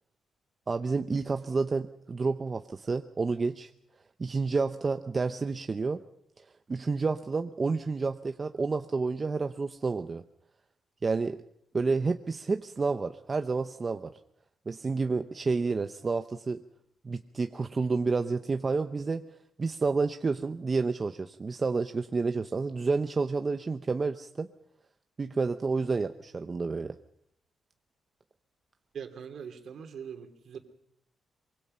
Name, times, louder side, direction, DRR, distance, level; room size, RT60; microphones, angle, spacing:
voice 1, 0.7-3.7 4.2-6.0 6.4-10.2 11.0-11.4 11.7-14.1 14.7-16.6 17.0-19.3 19.6-24.5 25.2-27.0, right 4 dB, 30° right, 8 dB, 0.8 m, -30 dB
voice 2, 28.9-30.6, right 7 dB, 60° right, 6 dB, 2.8 m, -42 dB
24.5 x 23.5 x 5.6 m, 0.71 s
cardioid pair, 125°, 0 cm